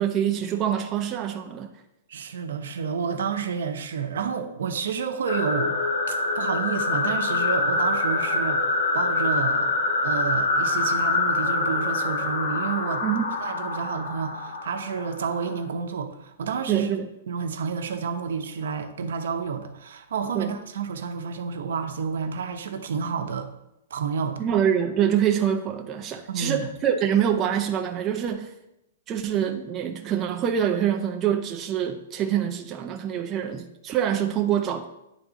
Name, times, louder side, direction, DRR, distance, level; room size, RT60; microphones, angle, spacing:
voice 1, 0.0-1.7 13.0-13.4 16.7-17.1 20.3-20.5 24.4-28.5 29.1-34.9, right 9 dB, 20° right, 4 dB, 0.5 m, -25 dB
voice 2, 2.1-5.8 6.1-9.7 10.0-13.0 13.4-16.9 17.3-23.5 23.9-24.5 26.3-26.7, right 6 dB, 75° right, 6 dB, 0.8 m, -30 dB
sound 1, 5.3-15.6, left 3 dB, 80° left, 1.5 m, -25 dB
10.0 x 3.6 x 4.0 m, 0.87 s
hypercardioid pair, 165°, 0 cm